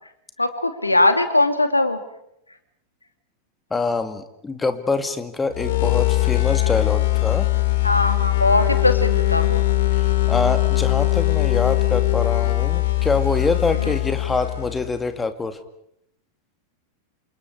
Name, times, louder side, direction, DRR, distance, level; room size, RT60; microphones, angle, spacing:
voice 1, 0.4-2.0 7.8-9.6 13.8-13.9, left 2 dB, 85° left, 9 dB, 2.3 m, -20 dB
voice 2, 3.7-7.5 10.0-15.6, left 3 dB, 10° left, 9 dB, 2.3 m, -25 dB
sound 1, 5.5-15.0, left 18 dB, 55° left, 2.9 m, -21 dB
27.5 x 27.0 x 4.8 m, 0.78 s
figure-of-eight pair, 90°, 0 cm